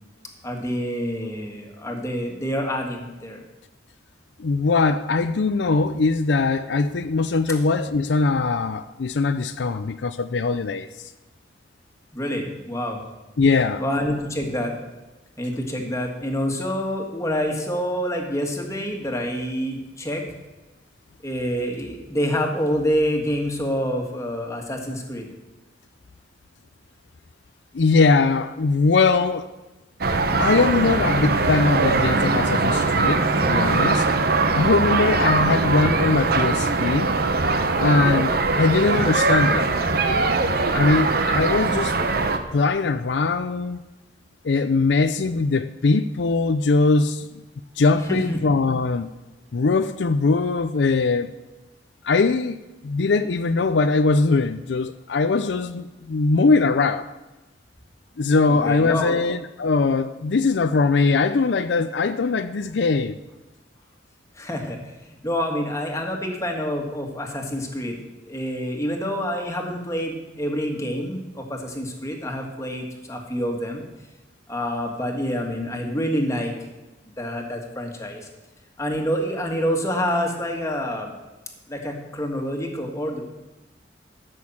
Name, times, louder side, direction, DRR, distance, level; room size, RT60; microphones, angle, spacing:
voice 1, 0.4-3.4 12.1-13.0 13.8-14.8 15.4-20.3 21.2-25.3 48.1-48.4 58.5-59.2 64.3-64.8 65.2-68.0 68.3-73.8 74.5-76.5 77.2-78.3 78.8-81.1 81.7-83.2, equal, 15° left, 1.8 m, -27 dB
voice 2, 4.4-11.1 13.4-13.8 27.7-29.5 30.4-34.1 34.5-37.1 37.8-39.7 40.7-42.0 42.5-43.8 44.4-47.4 47.8-49.1 49.5-51.3 52.0-52.6 52.8-57.1 58.2-63.2, left 4 dB, 80° left, 0.5 m, -21 dB
sound 1, 30.0-42.4, right 3 dB, 60° right, 0.9 m, -21 dB
13.0 x 6.3 x 7.2 m
head